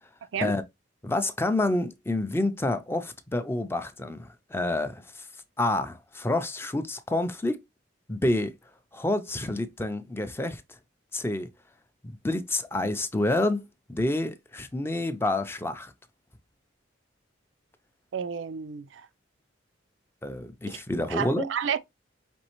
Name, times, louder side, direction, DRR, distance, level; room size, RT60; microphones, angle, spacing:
voice 1, 1.0-5.3 5.6-7.6 8.1-8.5 8.9-10.6 11.1-11.5 12.0-15.9 20.2-21.5, left 2 dB, 10° left, 0.4 m, -28 dB
voice 2, 18.1-19.1 20.7-20.8 21.1-21.8, right 7 dB, 70° right, 0.4 m, -31 dB
5.3 x 3.2 x 2.9 m
head